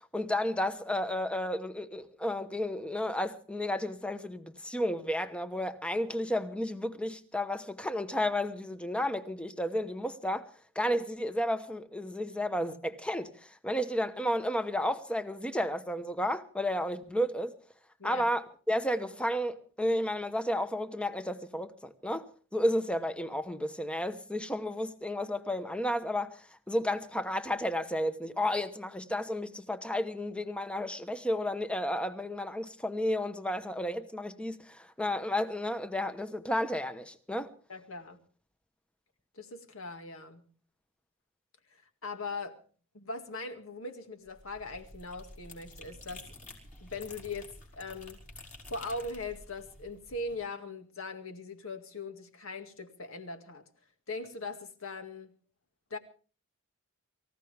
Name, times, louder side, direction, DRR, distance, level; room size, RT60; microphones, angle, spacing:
voice 1, 0.1-10.5 10.7-17.5 18.0-22.3 22.5-37.5, left 1 dB, 5° left, 1.0 m, -32 dB
voice 2, 37.7-38.2 39.3-40.4 41.7-42.6 42.9-46.2 46.8-48.2 48.7-53.7 54.1-55.3 55.9-56.0, left 3 dB, 65° left, 2.1 m, -40 dB
Watering flower, 44.3-50.4, left 2 dB, 40° left, 5.0 m, -50 dB
25.0 x 15.5 x 3.4 m
head